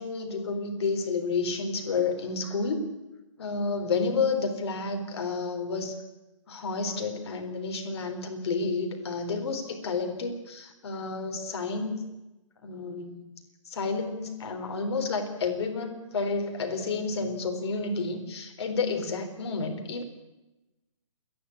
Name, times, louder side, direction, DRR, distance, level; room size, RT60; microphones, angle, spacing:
voice 1, 0.0-2.9 3.4-6.0 6.5-12.0 12.6-13.2 13.6-20.0, left 4 dB, 55° left, 5 dB, 4.0 m, -30 dB
28.0 x 11.0 x 8.6 m, 1.0 s
figure-of-eight pair, 135°, 17 cm